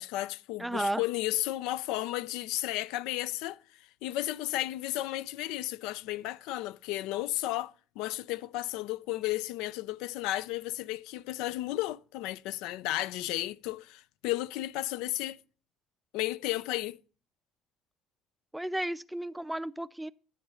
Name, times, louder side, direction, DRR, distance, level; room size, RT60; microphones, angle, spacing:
voice 1, 0.0-3.6 4.0-15.4 16.1-17.0, left 16 dB, 90° left, 0.4 m, -33 dB
voice 2, 0.6-1.0 18.5-20.1, right 1 dB, 5° right, 0.4 m, -33 dB
10.0 x 7.9 x 5.5 m
cardioid pair, 110°, 0 cm